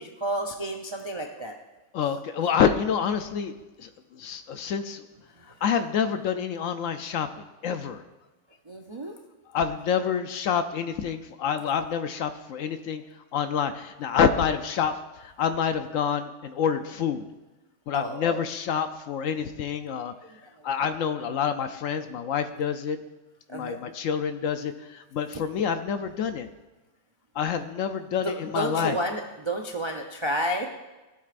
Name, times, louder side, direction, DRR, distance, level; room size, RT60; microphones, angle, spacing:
voice 1, 0.0-1.5 5.5-5.6 8.7-9.2 17.9-18.2 23.5-23.8 28.2-30.7, right 1 dB, 40° right, 2 dB, 0.4 m, -31 dB
voice 2, 1.9-3.5 3.8-5.0 5.6-7.3 7.6-8.0 9.5-13.0 13.3-14.9 15.2-17.2 17.9-20.1 20.6-23.0 23.5-26.5 27.3-29.0, left 7 dB, 70° left, 9 dB, 0.9 m, -27 dB
15.5 x 8.6 x 2.5 m, 1.1 s
omnidirectional pair, 1.6 m